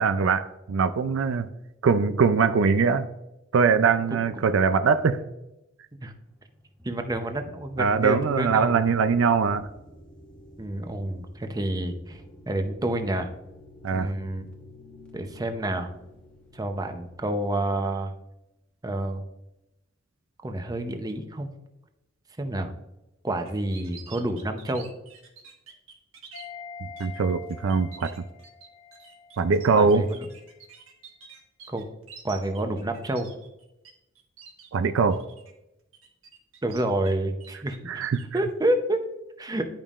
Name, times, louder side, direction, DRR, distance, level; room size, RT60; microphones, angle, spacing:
voice 1, 0.0-1.5 1.8-3.1 3.5-5.2 7.8-9.7 13.8-14.1 26.8-28.1 29.4-30.0 34.7-35.2 37.9-38.3, right 5 dB, 65° right, 11 dB, 0.4 m, -22 dB
sound 1, 6.1-17.4, left 1 dB, 5° left, 1.0 m, -51 dB
voice 2, 6.8-9.0 10.6-13.3 13.9-14.5 15.1-15.9 16.5-18.1 18.8-19.2 20.4-21.5 22.4-22.7 23.2-24.9 29.7-30.2 31.7-31.9 32.2-33.3 36.6-38.0 38.3-39.0 39.4-39.7, right 1 dB, 20° right, 6 dB, 0.6 m, -29 dB
sound 2, 23.5-26.5 27.0-27.2 27.5-33.9 34.2-34.7 35.1-35.5 35.9-37.1 37.4-38.4, right 6 dB, 85° right, 1.4 m, -48 dB
sound 3, 26.3-30.2 30.5-30.6, left 6 dB, 55° left, 1.0 m, -45 dB
10.5 x 5.3 x 2.4 m, 0.91 s
head